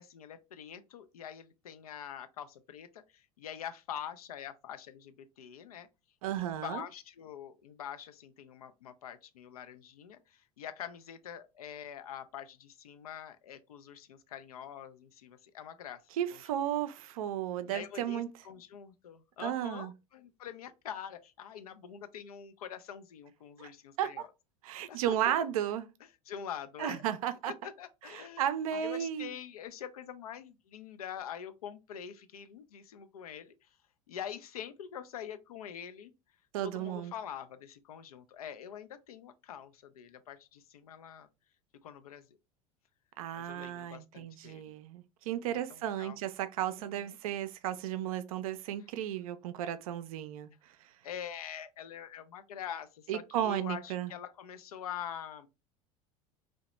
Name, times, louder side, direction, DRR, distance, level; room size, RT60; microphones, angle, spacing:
voice 1, 0.0-5.9 6.4-16.0 16.3-16.4 17.6-24.3 24.9-25.3 26.3-27.0 27.5-33.8 34.1-36.1 36.6-41.3 41.8-42.4 43.3-44.6 45.7-46.2 46.7-47.2 51.0-55.5, left 9 dB, 80° left, 0.4 m, -45 dB
voice 2, 6.2-6.8 16.2-18.3 19.4-19.9 23.6-23.7 24.0-24.2 24.6-25.9 26.8-27.5 28.1-29.3 36.5-37.1 43.2-50.5 53.1-54.1, right 11 dB, 70° right, 0.4 m, -34 dB
2.7 x 2.0 x 3.0 m
hypercardioid pair, 75°, 19 cm